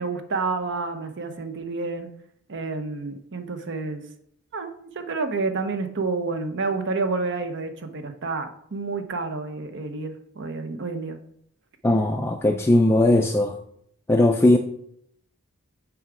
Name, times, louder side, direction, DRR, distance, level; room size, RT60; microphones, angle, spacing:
voice 1, 0.0-2.1 2.5-4.0 4.5-11.2, right 3 dB, 55° right, 8 dB, 0.8 m, -29 dB
voice 2, 11.8-13.6 14.1-14.6, left 1 dB, 10° left, 3 dB, 0.4 m, -18 dB
7.1 x 4.6 x 5.0 m, 0.69 s
head